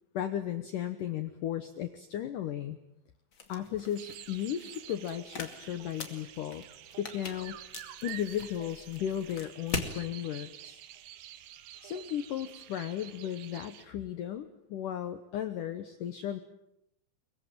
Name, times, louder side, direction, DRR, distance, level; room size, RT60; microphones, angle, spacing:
voice 1, 0.1-2.8 3.5-6.6 7.0-7.6 8.0-10.8 11.8-16.4, left 10 dB, 80° left, 10 dB, 1.9 m, -35 dB
sound 1, 3.3-10.0, left 4 dB, 35° left, 2.3 m, -42 dB
sound 2, 4.0-13.8, right 12 dB, 70° right, 2.5 m, -49 dB
sound 3, 5.6-8.7, right 2 dB, 55° left, 7.8 m, -67 dB
23.0 x 22.5 x 8.9 m, 0.79 s
omnidirectional pair, 5.3 m